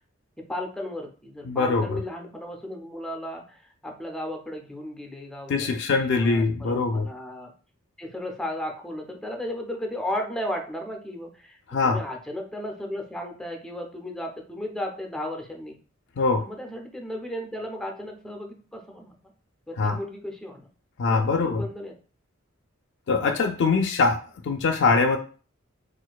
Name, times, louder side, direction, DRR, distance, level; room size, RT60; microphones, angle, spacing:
voice 1, 0.4-7.5 8.0-15.8 16.4-19.1 19.7-20.7 21.1-21.9, left 1 dB, 5° left, 2 dB, 0.5 m, -35 dB
voice 2, 1.5-2.0 5.5-7.1 11.7-12.0 16.2-16.5 19.8-20.0 21.0-21.6 23.1-25.2, left 4 dB, 60° left, 6 dB, 0.3 m, -23 dB
4.2 x 2.4 x 2.3 m, 0.39 s
head